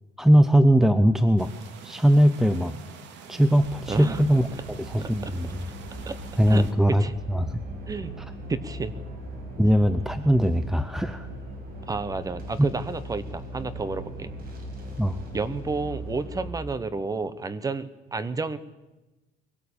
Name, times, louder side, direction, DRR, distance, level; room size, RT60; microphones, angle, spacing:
voice 1, 0.2-1.5 1.8-2.7 3.3-4.5 4.8-5.6 6.4-7.0 7.3-7.6 9.6-11.3 15.0-15.2, equal, ahead, 11 dB, 0.7 m, -20 dB
sound 1, 1.4-6.7, right 7 dB, 65° right, 2.6 m, -46 dB
sound 2, 3.6-16.5, right 1 dB, 50° right, 5.3 m, -39 dB
voice 2, 3.9-4.2 4.5-4.6 5.0-5.3 6.0-6.1 6.5-7.1 7.9-8.1 8.5-8.9 11.9-14.3 15.3-18.6, right 4 dB, 20° right, 15 dB, 1.1 m, -31 dB
22.5 x 17.0 x 8.6 m, 1.1 s
cardioid pair, 155°, 20 cm